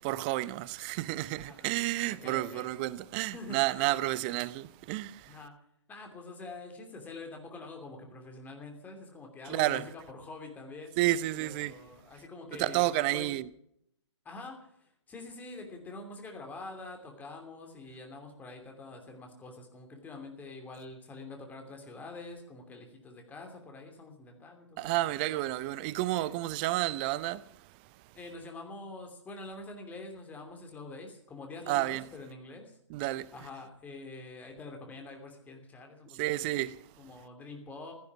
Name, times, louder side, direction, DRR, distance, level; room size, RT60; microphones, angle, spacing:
voice 1, 0.0-5.4 9.5-9.8 11.0-11.7 12.6-13.4 24.8-27.4 31.7-32.0 32.9-33.3 36.2-36.8, right 16 dB, 20° right, 0.5 m, -30 dB
voice 2, 1.4-1.7 2.1-2.7 3.3-3.9 5.3-5.5 5.9-10.9 11.3-13.3 14.2-25.5 26.1-26.4 28.1-32.8 33.3-37.9, left 3 dB, 10° left, 2.8 m, -46 dB
16.0 x 12.0 x 6.0 m
figure-of-eight pair, 130°, 15 cm